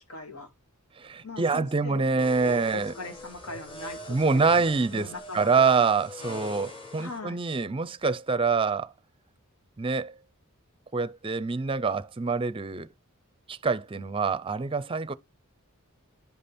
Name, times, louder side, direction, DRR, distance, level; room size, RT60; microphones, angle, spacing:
voice 1, 0.1-0.5 1.2-5.7 7.0-7.4, left 3 dB, 75° left, 2.4 m, -41 dB
voice 2, 1.0-2.9 4.1-8.9 9.8-10.2 10.9-12.9 13.5-15.1, right 4 dB, 25° right, 0.5 m, -26 dB
sound 1, 2.2-7.2, left 2 dB, 25° left, 1.9 m, -43 dB
10.5 x 5.3 x 4.2 m
head